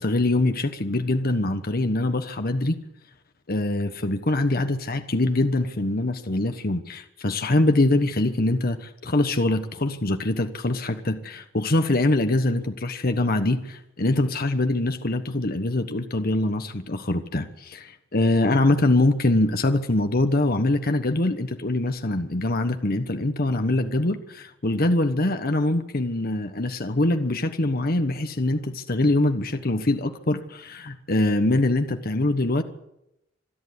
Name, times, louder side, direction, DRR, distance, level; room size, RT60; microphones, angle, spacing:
voice 1, 0.0-2.8 3.5-32.6, left 2 dB, 50° left, 7 dB, 1.3 m, -23 dB
26.5 x 11.0 x 9.7 m, 0.85 s
head